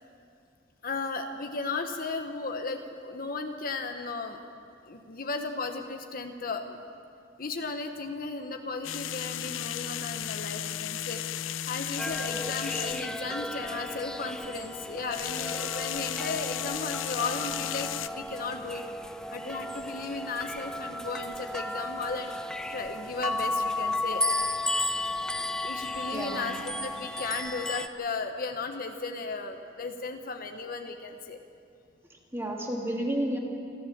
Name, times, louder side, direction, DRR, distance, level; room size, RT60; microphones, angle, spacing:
voice 1, 0.8-4.4 4.8-6.8 7.4-18.8 19.3-22.4 22.7-24.2 25.6-31.4, left 3 dB, 45° left, 5 dB, 1.0 m, -35 dB
sound 1, 8.8-13.2 15.0-18.1, left 11 dB, 75° left, 0.5 m, -34 dB
sound 2, 12.0-27.9, left 1 dB, 5° left, 0.5 m, -34 dB
voice 2, 26.1-26.6 32.1-33.4, right 1 dB, 10° right, -1 dB, 2.5 m, -32 dB
29.0 x 13.0 x 7.3 m, 2.4 s
head